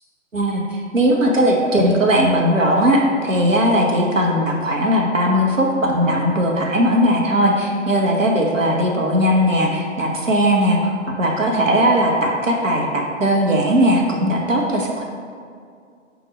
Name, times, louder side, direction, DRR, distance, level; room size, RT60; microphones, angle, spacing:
voice 1, 0.3-15.0, equal, 80° right, 0 dB, 1.1 m, -18 dB
4.4 x 4.1 x 5.2 m, 2.2 s
figure-of-eight pair, 120°, 38 cm